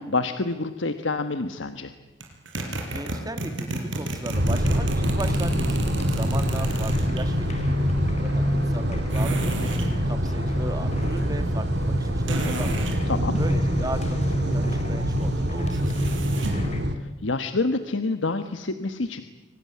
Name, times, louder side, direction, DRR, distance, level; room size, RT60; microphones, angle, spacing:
voice 1, 0.0-1.9 13.1-13.4 17.0-19.2, left 3 dB, 85° left, 9 dB, 1.3 m, -27 dB
sound 1, 2.2-7.3 9.1-9.9 12.3-13.0 15.7-16.7, right 1 dB, 85° right, 5.4 m, -32 dB
voice 2, 2.9-5.8 6.0-9.7 10.0-13.0 13.4-15.9, right 1 dB, 20° right, 9 dB, 2.0 m, -37 dB
sound 2, 4.3-17.0, equal, 60° right, 2.1 m, -25 dB
sound 3, 4.5-16.8, left 1 dB, 35° left, 3.9 m, -40 dB
25.5 x 19.0 x 9.8 m, 1.2 s
head